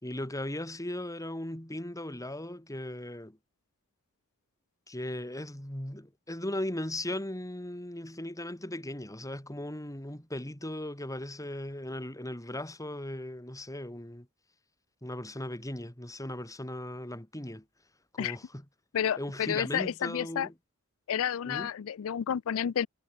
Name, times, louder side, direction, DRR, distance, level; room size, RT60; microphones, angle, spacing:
voice 1, 0.0-3.4 4.9-14.3 15.0-17.6 18.1-18.6 19.2-20.5 21.4-21.7, left 1 dB, 15° left, 3.2 m, -37 dB
voice 2, 18.9-20.5 21.1-22.9, left 9 dB, 65° left, 0.4 m, -30 dB
head